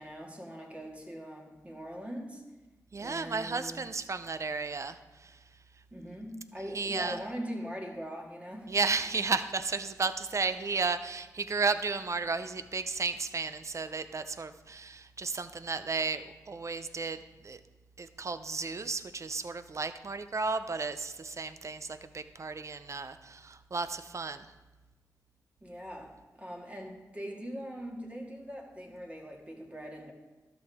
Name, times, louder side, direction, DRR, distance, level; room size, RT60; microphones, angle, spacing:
voice 1, 0.0-2.4 3.0-3.8 5.9-8.7 25.6-30.1, equal, 20° right, -1 dB, 2.2 m, -41 dB
voice 2, 2.9-5.4 6.7-7.2 8.7-17.6 18.0-24.5, right 4 dB, 50° right, 11 dB, 0.6 m, -33 dB
12.5 x 6.2 x 3.6 m, 1.1 s
cardioid pair, 45°, 7 cm